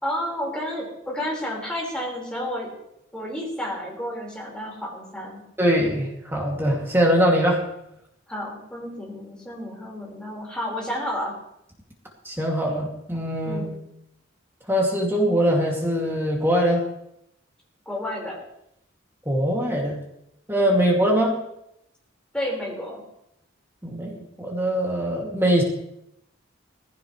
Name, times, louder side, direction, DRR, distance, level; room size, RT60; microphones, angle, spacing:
voice 1, 0.0-2.7 3.1-5.4 8.3-11.3 13.4-13.7 17.8-18.4 22.3-23.0, left 1 dB, 5° left, -4 dB, 4.8 m, -31 dB
voice 2, 5.6-7.6 12.2-13.7 14.7-16.9 19.3-20.0 20.5-21.4 23.8-25.6, equal, 10° right, -2 dB, 2.5 m, -22 dB
18.0 x 16.0 x 3.3 m, 0.80 s
head